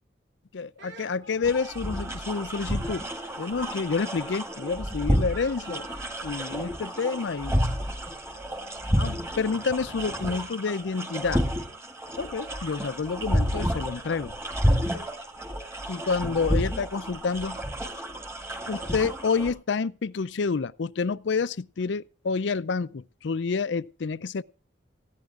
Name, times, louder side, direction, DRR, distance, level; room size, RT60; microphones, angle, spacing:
voice 1, 0.5-3.0 3.4-5.9 6.2-7.6 9.0-11.4 12.2-14.3 15.9-17.6 18.7-24.4, left 5 dB, 70° left, 0.5 m, -29 dB
Speech, 0.8-6.3, right 3 dB, 75° right, 2.7 m, -48 dB
sound 1, 1.4-19.5, equal, 15° right, 1.7 m, -30 dB
18.5 x 15.0 x 2.5 m
head